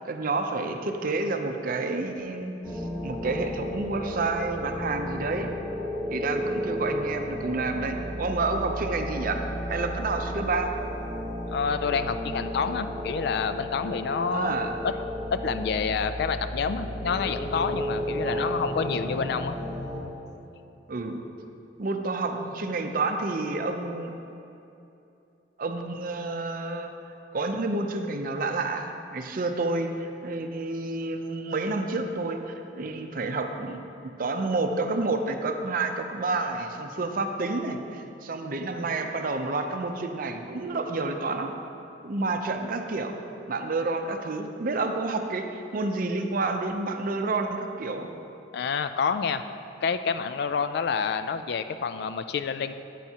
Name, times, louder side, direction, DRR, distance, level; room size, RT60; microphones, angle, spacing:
voice 1, 0.1-5.5 6.1-9.4 9.7-10.7 14.3-14.7 18.2-18.6 20.9-21.2 21.8-24.1 25.6-26.9 27.3-33.9 34.2-41.5 42.0-43.2 43.5-48.1, right 3 dB, 50° right, 5 dB, 0.6 m, -29 dB
sound 1, 2.6-20.0, equal, 5° left, 1.2 m, -33 dB
voice 2, 11.5-14.6 14.8-14.9 15.3-19.6 48.5-49.4 49.8-52.7, left 6 dB, 60° left, 11 dB, 0.3 m, -28 dB
9.1 x 8.8 x 2.8 m, 2.8 s
head